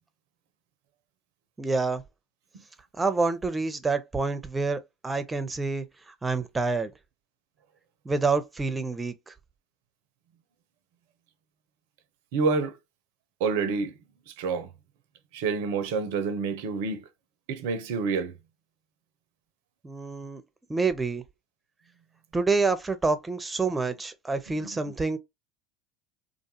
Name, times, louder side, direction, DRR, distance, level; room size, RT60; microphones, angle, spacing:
voice 1, 1.6-2.0 3.0-5.8 6.2-6.9 8.0-9.3 19.8-20.4 20.7-21.2 22.3-25.2, right 3 dB, 15° right, 0.6 m, -27 dB
voice 2, 12.3-12.8 13.4-14.0 14.3-14.7 15.3-17.0 17.5-18.3, right 4 dB, 65° right, 0.5 m, -28 dB
2.5 x 2.3 x 2.8 m
hypercardioid pair, 75°, 0 cm